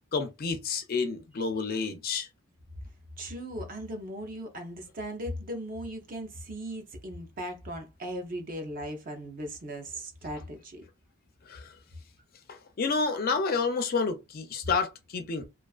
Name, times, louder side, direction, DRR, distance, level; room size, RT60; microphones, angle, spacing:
voice 1, 0.1-2.3 11.5-11.7 12.5-15.5, left 4 dB, 40° left, 0.4 m, -29 dB
voice 2, 3.2-10.8, equal, 40° right, 0.6 m, -38 dB
2.4 x 2.3 x 2.3 m
head